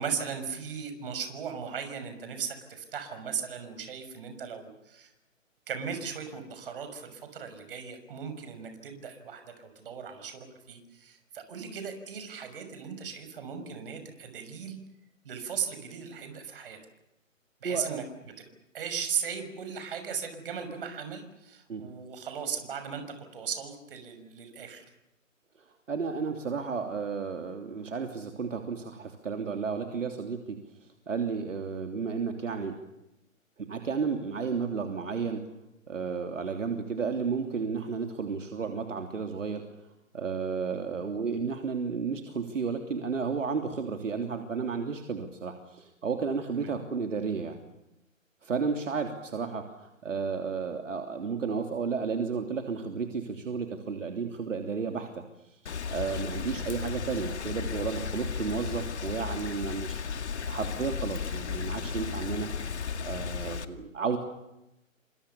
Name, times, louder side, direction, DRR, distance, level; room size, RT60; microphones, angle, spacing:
voice 1, 0.0-5.1 5.7-14.8 15.2-16.8 17.6-18.3 18.7-24.8 46.6-46.7, right 7 dB, 40° right, 8 dB, 6.2 m, -37 dB
voice 2, 17.6-18.0 21.7-21.8 25.6-32.7 33.6-35.4 35.9-39.9 40.1-47.6 48.4-60.0 60.4-62.5 63.0-64.2, right 5 dB, 65° right, 5 dB, 3.2 m, -33 dB
Rain, 55.7-63.7, left 6 dB, 55° left, 2.3 m, -34 dB
28.5 x 26.5 x 7.1 m, 0.89 s
hypercardioid pair, 155°, 40 cm